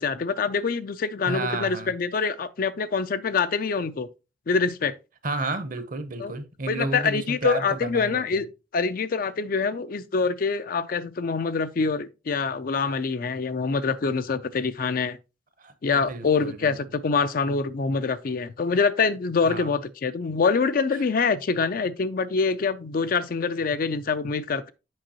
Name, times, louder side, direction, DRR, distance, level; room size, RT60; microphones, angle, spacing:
voice 1, 0.0-4.1 4.5-4.9 6.2-6.3 6.7-8.4 8.7-15.2 15.8-24.7, left 5 dB, 50° left, 0.4 m, -25 dB
voice 2, 1.2-1.9 5.2-8.2 15.6-15.7 16.1-16.8 19.5-19.7, right 2 dB, 50° right, 0.8 m, -31 dB
7.6 x 5.4 x 2.9 m
head